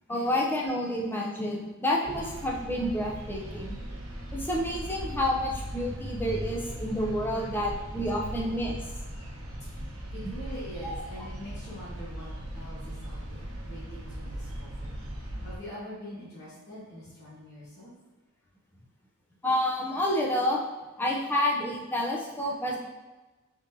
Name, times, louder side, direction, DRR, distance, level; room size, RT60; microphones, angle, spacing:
voice 1, 0.1-3.8 4.3-8.8 10.8-10.9 19.4-20.6 21.0-22.8, left 1 dB, 10° left, -2 dB, 0.5 m, -29 dB
sound 1, 2.0-15.6, equal, 80° right, 1.0 m, -38 dB
voice 2, 9.1-14.9 15.2-17.9, equal, 50° left, -10 dB, 1.3 m, -45 dB
4.1 x 3.7 x 2.7 m, 1.2 s
head